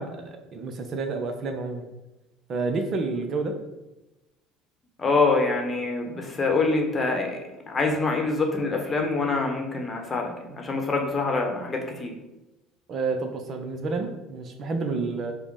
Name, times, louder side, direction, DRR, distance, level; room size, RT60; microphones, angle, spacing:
voice 1, 0.0-1.8 2.5-3.5 12.9-15.3, right 3 dB, 40° right, 5 dB, 0.5 m, -29 dB
voice 2, 5.0-7.4 7.7-12.1, left 3 dB, 25° left, 2 dB, 0.9 m, -25 dB
4.9 x 2.1 x 4.7 m, 1.0 s
figure-of-eight pair, 60°, 0 cm